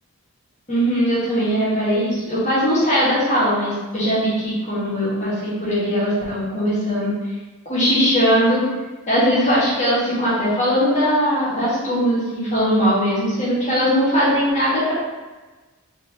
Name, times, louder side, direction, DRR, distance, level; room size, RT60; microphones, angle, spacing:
voice 1, 0.7-7.1 7.7-8.6 9.1-14.9, equal, 30° left, -9 dB, 1.5 m, -20 dB
3.9 x 3.3 x 2.9 m, 1.2 s
head